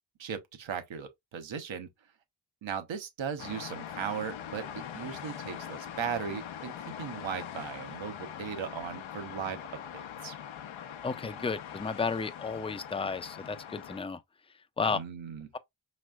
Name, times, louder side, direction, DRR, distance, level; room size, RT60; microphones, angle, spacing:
voice 1, 0.2-1.9 2.6-6.7 7.0-9.6 9.9-10.4 14.9-15.5, right 7 dB, 70° right, 1.0 m, -37 dB
sound 1, 3.4-14.0, left 9 dB, 75° left, 0.7 m, -42 dB
voice 2, 11.0-14.2 14.8-15.0, left 4 dB, 10° left, 0.5 m, -33 dB
5.1 x 3.2 x 2.3 m
cardioid pair, 55°, 48 cm